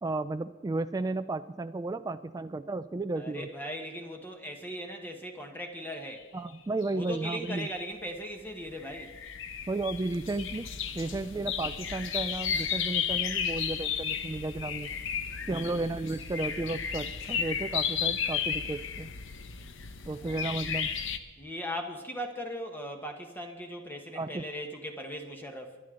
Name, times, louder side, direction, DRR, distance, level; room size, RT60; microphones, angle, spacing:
voice 1, 0.0-3.5 6.3-7.7 9.7-10.7 10.9-14.9 15.5-19.1 20.1-20.9 24.1-24.5, right 2 dB, 20° right, 9 dB, 0.3 m, -33 dB
voice 2, 3.2-6.3 6.9-9.1 20.1-20.5 21.4-25.8, equal, 10° left, 4 dB, 1.2 m, -39 dB
sound 1, 6.8-7.9 8.5-21.2, left 7 dB, 65° left, 0.9 m, -34 dB
22.5 x 11.0 x 3.8 m, 1.2 s
head